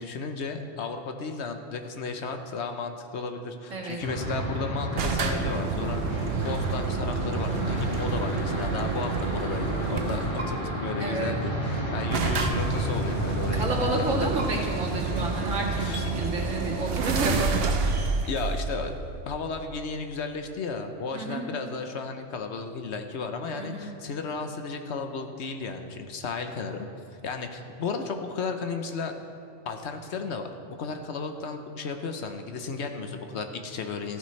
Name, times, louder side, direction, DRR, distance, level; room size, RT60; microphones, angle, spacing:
voice 1, 0.0-13.6 14.0-14.3 15.8-16.0 18.3-18.9 19.3-26.9 27.2-29.1 29.7-34.2, left 4 dB, 65° left, 6 dB, 1.0 m, -34 dB
voice 2, 3.7-4.0 7.5-7.8 11.0-11.3 13.5-18.1 21.1-21.4 23.5-23.9, right 2 dB, 85° right, -2 dB, 2.1 m, -31 dB
sound 1, 4.0-16.1, right 1 dB, 30° left, 2.5 m, -32 dB
sound 2, 5.0-10.5 11.5-11.6 11.8-11.9 12.1-19.6, right 4 dB, 55° right, 0.9 m, -29 dB
sound 3, 10.4-10.5 12.4-12.5 14.4-14.5 15.9-16.1, right 2 dB, 40° right, 1.7 m, -35 dB
14.0 x 13.5 x 3.2 m, 2.6 s
omnidirectional pair, 1.3 m